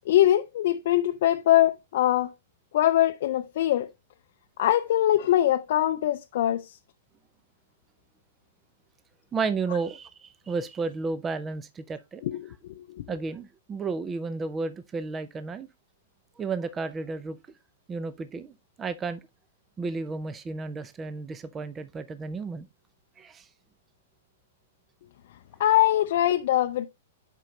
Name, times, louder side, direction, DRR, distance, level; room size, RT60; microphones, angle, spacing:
voice 1, 0.1-2.3 2.7-3.9 4.6-6.8 12.2-12.3 25.6-26.9, left 13 dB, 60° left, 0.5 m, -22 dB
voice 2, 9.3-12.2 13.1-15.7 16.4-17.4 17.9-19.2 19.8-22.7 23.2-23.5, right 4 dB, 20° right, 0.6 m, -32 dB
7.4 x 5.3 x 3.2 m
hypercardioid pair, 130°, 0 cm